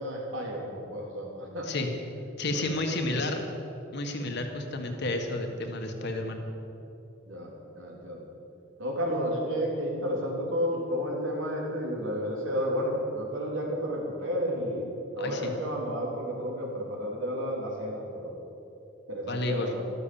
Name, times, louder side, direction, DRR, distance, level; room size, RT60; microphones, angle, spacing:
voice 1, 0.0-1.7 2.5-3.4 4.3-4.5 7.3-8.3 8.8-14.9 15.2-18.4 19.1-19.8, equal, 80° right, -2 dB, 3.6 m, -32 dB
voice 2, 2.4-3.4 3.9-6.5 15.2-15.5 19.3-19.7, left 2 dB, 60° left, 4 dB, 1.7 m, -31 dB
13.0 x 13.0 x 7.1 m, 3.0 s
head